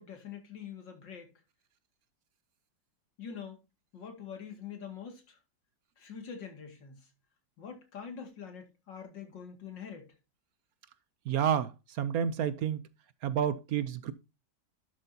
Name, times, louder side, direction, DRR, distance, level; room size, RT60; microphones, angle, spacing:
voice 1, 0.0-1.3 3.2-3.6 3.9-5.4 6.0-7.1 7.6-10.2, left 7 dB, 80° left, 2.9 m, -45 dB
voice 2, 11.3-12.8 13.2-14.1, right 8 dB, 65° right, 1.0 m, -30 dB
11.5 x 7.5 x 2.8 m
omnidirectional pair, 1.9 m